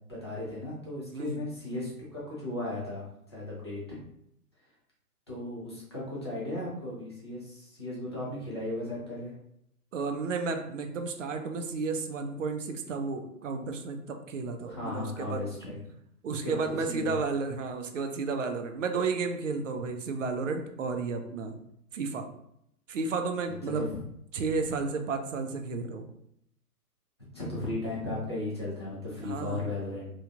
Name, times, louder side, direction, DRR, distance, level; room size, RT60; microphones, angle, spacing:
voice 1, 0.0-4.0 5.3-9.3 14.7-15.8 16.3-16.6 16.9-17.2 23.8-23.9 27.3-30.1, left 2 dB, 20° left, -7 dB, 0.4 m, -36 dB
voice 2, 1.1-1.4 9.9-15.5 16.2-21.6 21.9-22.3 22.9-23.9 24.3-26.1 29.2-29.7, right 4 dB, 55° right, 5 dB, 0.5 m, -32 dB
3.1 x 2.4 x 2.4 m, 0.76 s
figure-of-eight pair, 125°, 47 cm